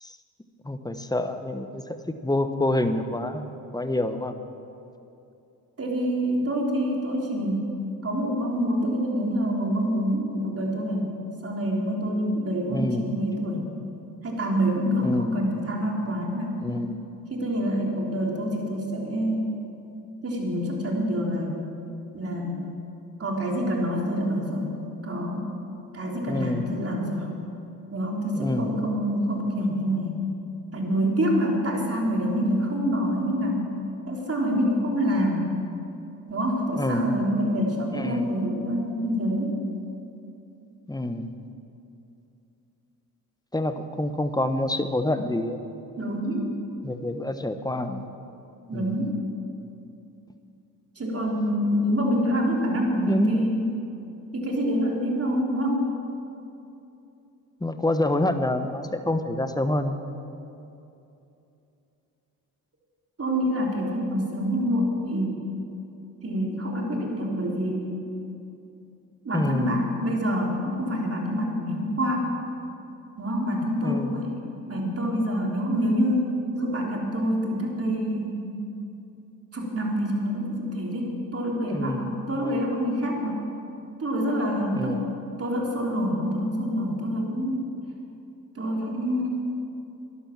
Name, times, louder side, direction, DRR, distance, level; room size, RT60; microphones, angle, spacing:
voice 1, 0.6-2.0 2.2-4.3 12.7-13.1 15.0-15.3 16.6-17.0 26.3-26.7 28.3-28.8 36.7-37.1 37.9-38.3 40.9-41.3 43.5-45.6 46.8-48.0 48.7-49.0 53.1-53.6 57.6-60.0 69.3-69.8 73.8-74.1 81.7-82.1 82.4-82.6 84.7-85.0, left 1 dB, 10° left, 8 dB, 1.1 m, -27 dB
voice 2, 5.8-7.6 8.0-11.0 11.4-13.6 14.2-16.5 17.3-19.5 20.2-21.5 22.1-22.7 23.2-24.7 25.0-25.5 25.9-27.3 27.9-30.2 30.7-33.6 34.1-35.5 36.3-39.6 46.0-46.5 48.7-49.2 51.0-53.7 54.3-55.8 63.2-65.4 66.2-68.0 69.2-72.3 73.2-74.4 74.7-78.5 79.5-83.4 84.0-85.0 85.4-87.7 88.6-89.3, equal, 30° right, -1 dB, 3.6 m, -26 dB
12.0 x 11.5 x 7.4 m, 2.8 s
hypercardioid pair, 50°, 44 cm